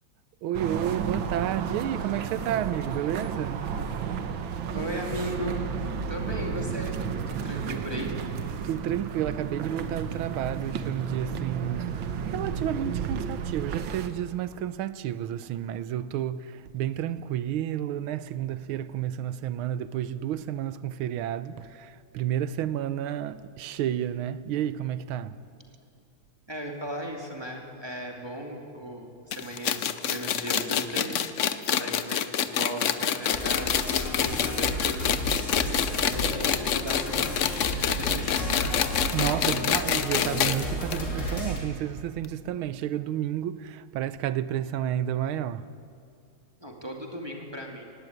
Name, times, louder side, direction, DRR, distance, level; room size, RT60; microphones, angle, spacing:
voice 1, 0.4-3.6 8.6-25.4 39.1-45.7, right 11 dB, 85° right, 1.5 m, -31 dB
sound 1, 0.5-14.1, right 6 dB, 70° right, 1.8 m, -32 dB
voice 2, 4.7-5.6 6.1-7.0 7.3-8.1 26.5-37.4 37.8-38.8 39.7-39.9 46.6-47.8, equal, 10° right, 2.2 m, -37 dB
sound 2, 29.3-40.6 40.9-41.0 41.3-41.4 42.2-42.3, left 9 dB, 70° left, 0.7 m, -26 dB
sound 3, 33.3-41.6, equal, 35° left, 3.3 m, -32 dB
18.0 x 16.5 x 9.4 m
omnidirectional pair, 2.2 m